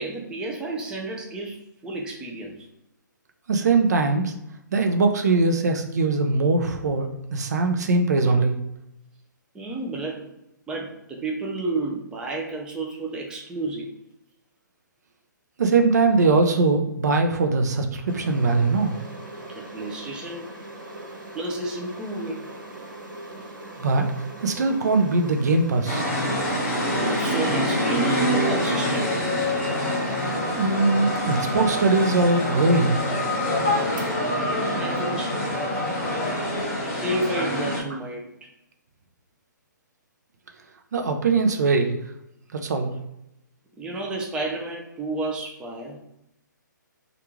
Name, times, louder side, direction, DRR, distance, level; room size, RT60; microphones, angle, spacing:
voice 1, 0.0-2.7 9.5-10.3 10.7-13.9 19.6-20.5 21.3-22.5 27.1-29.2 34.5-35.4 36.9-38.5 43.8-46.0, right 2 dB, 10° right, -1 dB, 0.5 m, -31 dB
voice 2, 3.5-4.3 4.7-8.5 15.6-19.0 23.8-24.0 24.4-26.1 30.5-33.0 40.9-42.0 42.5-42.9, right 3 dB, 55° right, 5 dB, 0.6 m, -21 dB
sound 1, 18.1-36.5, right 2 dB, 80° right, 1.2 m, -41 dB
sound 2, 25.9-37.8, left 1 dB, 20° left, 1.2 m, -25 dB
3.3 x 2.5 x 3.0 m, 0.83 s
figure-of-eight pair, 135°, 10 cm